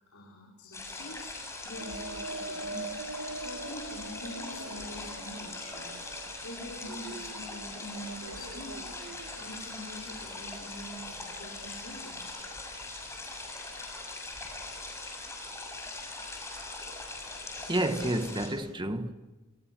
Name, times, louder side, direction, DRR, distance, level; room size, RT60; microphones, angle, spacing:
voice 1, 0.1-3.0 3.4-6.1 6.4-8.9 9.4-12.3, left 1 dB, 70° left, 4.9 m, -45 dB
sound 1, 0.7-18.5, left 2 dB, 15° left, 7.3 m, -41 dB
sound 2, 1.8-11.8, right 2 dB, 65° right, 1.8 m, -44 dB
voice 2, 17.7-19.1, right 1 dB, 20° right, 1.4 m, -29 dB
29.5 x 28.5 x 6.1 m
head